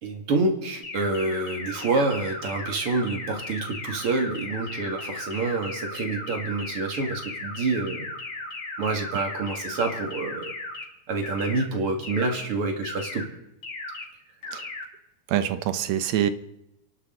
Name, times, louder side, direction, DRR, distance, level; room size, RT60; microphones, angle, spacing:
voice 1, 0.0-8.1 8.8-10.5 11.1-13.3, right 3 dB, 50° right, 4 dB, 2.8 m, -27 dB
sound 1, 0.8-10.8 11.2-11.6 12.0-12.4 12.8-13.2 13.6-14.0 14.4-14.8, left 2 dB, 45° left, 3.5 m, -36 dB
voice 2, 15.3-16.3, right 10 dB, 70° right, 11 dB, 2.1 m, -25 dB
29.5 x 11.5 x 3.9 m, 0.86 s
omnidirectional pair, 3.4 m